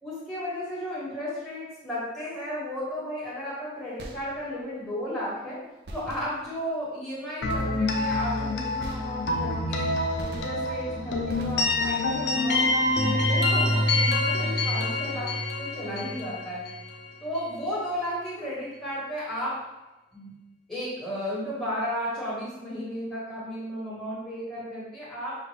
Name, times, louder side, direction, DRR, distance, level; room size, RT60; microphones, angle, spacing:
voice 1, 0.0-5.6 5.9-9.9 10.2-12.7 13.0-15.3 15.6-16.6 17.2-19.6 20.1-20.3 20.7-25.3, equal, ahead, -9 dB, 1.5 m, -34 dB
sound 1, 4.0-4.7 5.9-6.8 7.5-8.1 8.8-9.6 10.2-10.9 11.3-12.1, right 1 dB, 60° right, 0.6 m, -43 dB
sound 2, 7.4-17.2, left 2 dB, 75° left, 0.6 m, -26 dB
5.8 x 2.5 x 3.3 m, 1.1 s
head